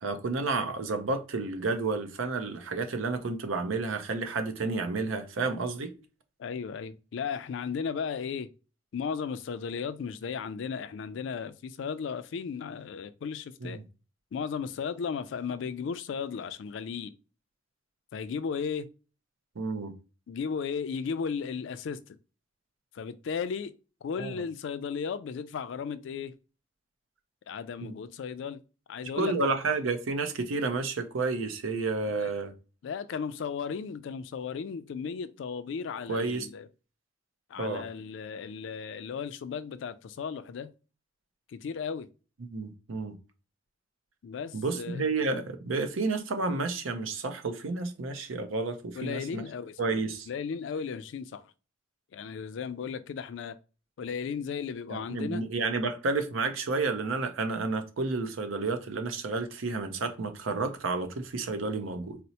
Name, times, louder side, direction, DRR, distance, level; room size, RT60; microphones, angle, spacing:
voice 1, 0.0-5.9 13.6-13.8 19.6-19.9 24.2-24.4 27.8-27.9 29.1-32.5 36.1-36.5 37.6-37.8 42.4-43.2 44.5-49.4 49.8-50.3 54.9-62.2, right 3 dB, 85° right, 0.6 m, -31 dB
voice 2, 6.4-8.5 8.9-13.8 14.3-17.1 18.1-18.9 20.3-22.2 22.9-23.7 24.0-26.3 27.5-28.6 28.9-29.5 32.2-32.3 32.8-36.7 37.5-40.7 41.5-42.1 44.2-45.0 48.9-49.8 50.3-51.4 52.1-53.6 54.0-55.4, left 6 dB, 65° left, 0.3 m, -35 dB
4.2 x 2.0 x 2.7 m
head